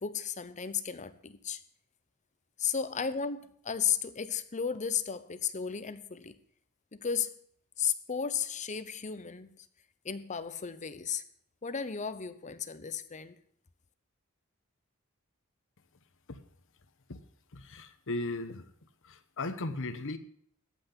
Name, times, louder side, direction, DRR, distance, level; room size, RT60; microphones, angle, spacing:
voice 1, 0.0-1.6 2.6-6.4 6.9-7.3 7.8-9.7 10.0-11.2 11.6-13.4, left 7 dB, 35° left, 0.8 m, -34 dB
voice 2, 17.5-18.7 19.0-20.2, left 2 dB, 60° left, 1.1 m, -37 dB
14.0 x 5.9 x 8.8 m
head